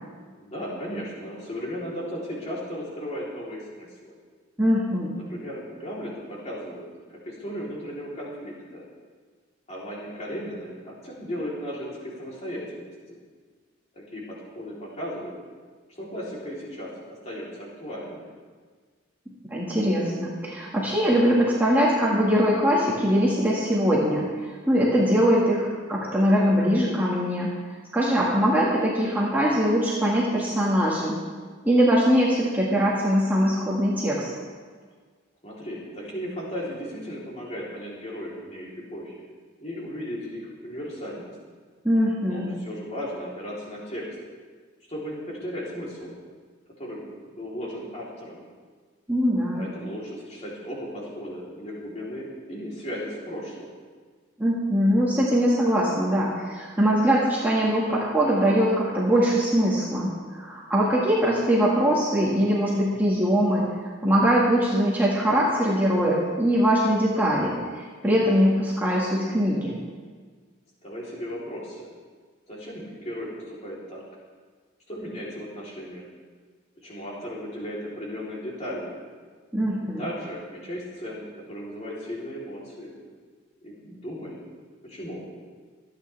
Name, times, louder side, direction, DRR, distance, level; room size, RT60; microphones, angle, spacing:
voice 1, 0.3-4.1 5.1-8.8 9.7-13.2 13.9-15.3 15.9-18.3 35.4-39.2 39.6-41.4 42.2-44.1 44.9-46.1 46.8-48.4 49.5-53.7 70.8-71.9 72.5-74.0 74.9-76.0 76.8-79.0 80.0-83.0 83.6-84.4 84.8-85.3, equal, 35° left, -5 dB, 3.5 m, -36 dB
voice 2, 4.6-5.1 19.5-27.5 27.9-31.2 31.6-34.3 41.8-42.5 49.1-49.6 54.4-69.7 79.5-80.0, equal, 10° right, -6 dB, 1.8 m, -22 dB
25.5 x 9.2 x 3.4 m, 1.5 s
head